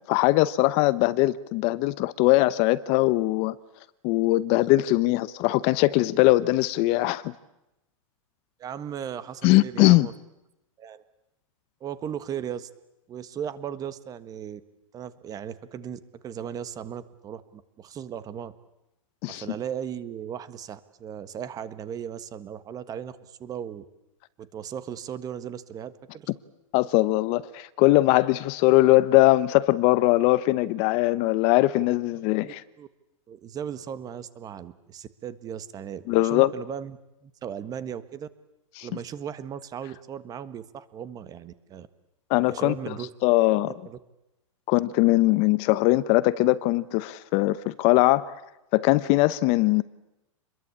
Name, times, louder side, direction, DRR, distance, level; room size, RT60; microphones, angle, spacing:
voice 1, 0.1-3.5 4.0-7.3 9.4-10.1 19.2-19.4 26.7-32.6 36.1-36.5 38.8-38.9 42.3-42.7 43.2-43.7 44.7-48.3 48.7-49.8, left 18 dB, 35° left, 0.9 m, -21 dB
voice 2, 8.6-10.1 10.8-11.0 11.8-12.7 13.1-14.6 14.9-18.5 19.3-23.8 24.4-26.3 32.3-32.9 33.3-37.0 37.2-38.3 38.8-41.9 42.5-43.1 43.7-44.0, right 9 dB, 20° right, 1.4 m, -37 dB
28.0 x 22.0 x 8.6 m
hypercardioid pair, 150°, 17 cm